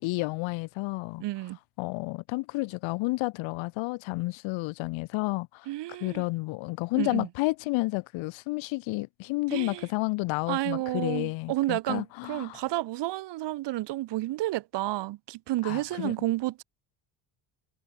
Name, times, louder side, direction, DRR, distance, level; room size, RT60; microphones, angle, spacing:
voice 1, 0.0-1.2 1.8-5.7 6.0-12.6 15.6-16.1, left 23 dB, 70° left, 1.2 m, -31 dB
voice 2, 1.2-1.6 5.7-6.2 7.0-7.3 9.5-9.9 10.5-16.6, right 17 dB, 60° right, 1.9 m, -31 dB
cardioid pair, 130°, 47 cm